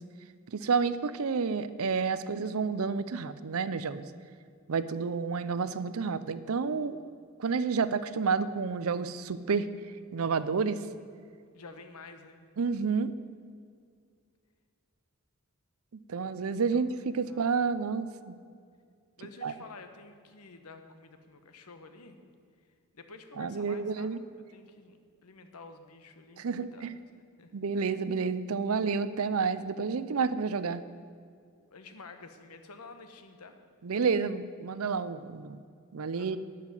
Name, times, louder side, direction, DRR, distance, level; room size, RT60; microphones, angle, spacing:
voice 1, 0.5-4.0 4.7-7.0 7.4-9.7 10.1-10.8 12.6-13.1 16.1-18.3 19.4-19.5 23.4-24.2 26.4-27.0 27.5-30.8 33.8-35.6 35.9-36.4, right 5 dB, 75° right, 14 dB, 0.5 m, -30 dB
voice 2, 11.5-12.5 16.7-16.8 17.2-17.4 19.2-22.2 22.9-24.1 24.5-26.8 27.4-27.5 31.7-33.6 36.1-36.4, left 3 dB, 90° left, 7 dB, 1.1 m, -50 dB
12.0 x 5.8 x 9.0 m, 2.2 s
head